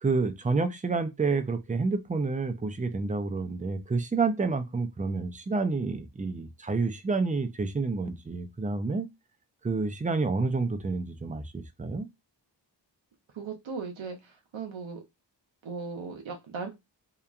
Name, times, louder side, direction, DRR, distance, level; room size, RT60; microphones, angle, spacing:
voice 1, 0.0-9.1 9.6-12.1, right 3 dB, 20° right, 0.4 m, -29 dB
voice 2, 13.3-15.0 15.6-16.7, right 4 dB, 90° right, 0.6 m, -37 dB
2.9 x 2.2 x 2.4 m
wide cardioid pair, 55°, 45 cm